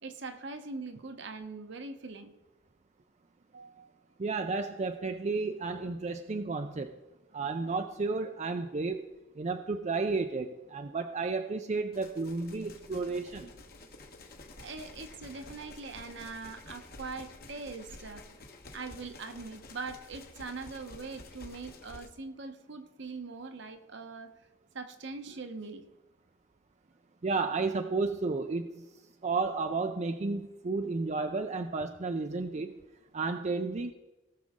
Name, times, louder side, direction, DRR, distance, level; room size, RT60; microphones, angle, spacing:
voice 1, 0.0-2.3 3.5-3.9 14.6-18.3 18.7-24.3 24.7-25.9, right 3 dB, 65° right, 7 dB, 1.0 m, -42 dB
voice 2, 4.2-6.9 7.3-9.0 9.4-13.5 27.2-28.9 29.2-32.7 33.1-33.9, right 3 dB, 35° right, 7 dB, 0.5 m, -32 dB
sound 1, 11.9-22.1, left 2 dB, 50° left, 1.2 m, -50 dB
18.5 x 6.3 x 3.7 m, 1.1 s
head